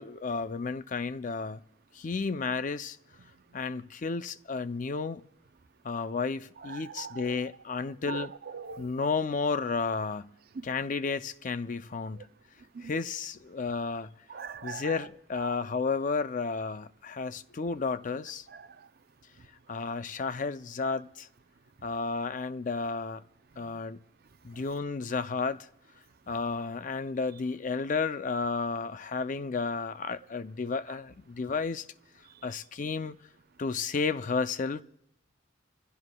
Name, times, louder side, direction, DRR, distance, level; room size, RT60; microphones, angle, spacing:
voice 1, 0.0-1.6 1.9-3.0 3.5-5.2 5.8-8.3 8.8-10.3 10.6-12.2 12.8-14.1 14.6-18.5 19.7-21.3 21.8-23.2 23.6-24.0 24.4-25.7 26.3-31.9 32.4-33.2 33.6-34.8, left 4 dB, 40° left, 0.4 m, -32 dB
voice 2, 6.6-7.5 8.0-8.9 10.5-10.6 12.2-12.3 12.7-13.0 14.3-15.6 18.5-18.7 20.8-21.0 30.9-31.0, right 6 dB, 50° right, 0.5 m, -42 dB
27.0 x 15.5 x 2.2 m
head